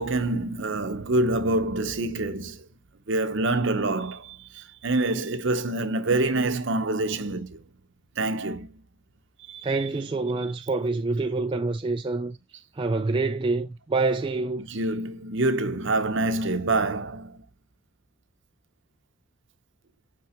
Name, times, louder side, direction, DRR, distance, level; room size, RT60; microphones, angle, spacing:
voice 1, 0.0-2.6 3.1-7.6 8.2-8.7 9.5-10.0 10.4-10.5 14.7-17.4, right 2 dB, 55° right, 0.8 m, -26 dB
voice 2, 9.6-12.4 12.8-14.6, right 3 dB, 25° right, 0.3 m, -26 dB
5.7 x 4.5 x 4.3 m
head